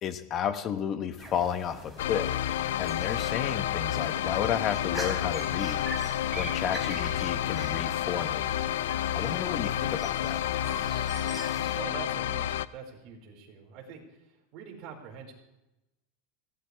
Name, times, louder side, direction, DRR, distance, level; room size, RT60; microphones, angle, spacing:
voice 1, 0.0-2.3 2.8-5.9 6.3-8.5 9.1-10.4, left 8 dB, 35° left, 10 dB, 1.1 m, -32 dB
sound 1, 1.2-11.8, right 1 dB, ahead, 3.5 m, -43 dB
sound 2, 2.0-12.7, left 12 dB, 85° left, 0.5 m, -30 dB
voice 2, 11.7-15.3, right 6 dB, 45° right, 0 dB, 5.1 m, -44 dB
21.5 x 17.0 x 3.4 m, 0.95 s
supercardioid pair, 145°, 0 cm